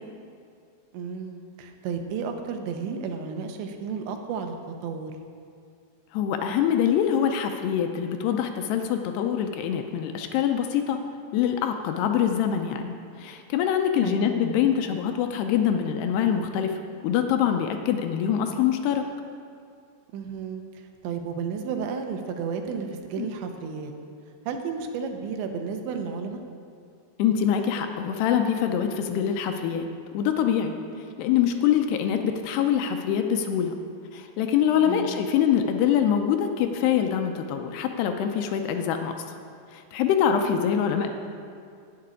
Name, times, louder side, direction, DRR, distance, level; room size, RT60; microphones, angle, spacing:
voice 1, 0.9-4.5 4.8-5.1 14.0-14.3 20.1-20.6 21.0-23.9 24.5-26.4 34.9-35.2 40.3-40.6, right 5 dB, 85° right, 5 dB, 3.3 m, -32 dB
voice 2, 6.1-11.0 11.3-19.0 23.2-23.3 27.2-29.9 30.1-30.7 31.2-33.7 34.1-39.4 39.7-41.1, left 9 dB, 80° left, 5 dB, 2.6 m, -24 dB
11.5 x 7.7 x 9.6 m, 2.3 s
omnidirectional pair, 5.1 m